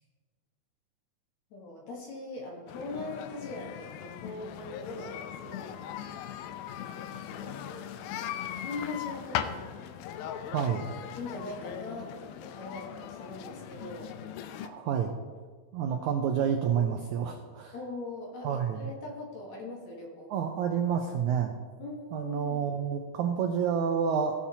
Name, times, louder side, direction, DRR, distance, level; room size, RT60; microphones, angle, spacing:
voice 1, 1.5-6.1 7.0-7.8 8.3-9.6 11.2-14.2 15.9-16.1 17.7-20.3 21.8-22.7, left 3 dB, 60° left, -2 dB, 2.3 m, -41 dB
sound 1, 2.7-14.7, left 10 dB, 90° left, 2.4 m, -39 dB
voice 2, 10.5-10.9 14.6-15.2 15.7-17.7 18.4-18.9 20.3-21.5 22.1-24.3, right 7 dB, 85° right, 4 dB, 1.6 m, -29 dB
16.5 x 7.2 x 2.8 m, 1.5 s
omnidirectional pair, 4.2 m